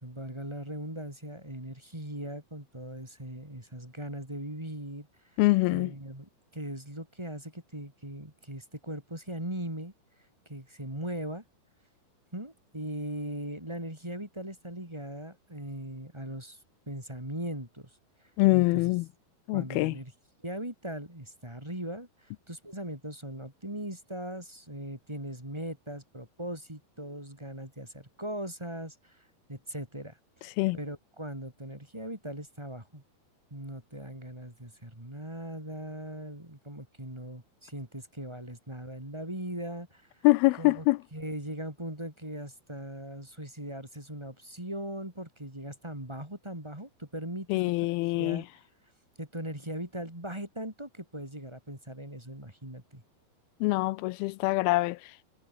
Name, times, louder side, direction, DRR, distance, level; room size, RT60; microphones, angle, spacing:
voice 1, 0.0-5.1 5.7-9.9 10.4-11.4 12.3-16.6 16.8-17.9 18.2-18.9 19.5-20.1 20.4-33.0 33.5-40.3 40.6-40.9 41.1-48.5 49.2-53.0, right 1 dB, 5° right, 3.4 m, -39 dB
voice 2, 5.4-5.9 18.4-19.1 19.5-20.0 30.6-30.8 40.2-41.0 47.5-48.4 53.6-55.2, left 22 dB, 85° left, 2.2 m, -24 dB
omnidirectional pair, 4.9 m